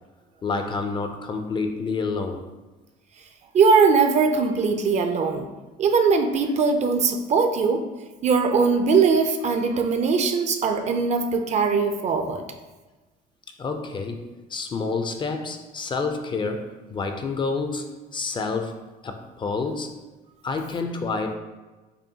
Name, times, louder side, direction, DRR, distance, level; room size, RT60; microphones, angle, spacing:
voice 1, 0.4-2.4 13.6-17.9 18.1-18.8 19.0-19.9 20.4-21.4, left 4 dB, 30° left, 5 dB, 0.3 m, -28 dB
voice 2, 3.5-5.5 5.8-7.8 8.2-12.4, right 5 dB, 40° right, 6 dB, 0.4 m, -20 dB
5.4 x 2.1 x 2.7 m, 1.2 s
cardioid pair, 110°, 17 cm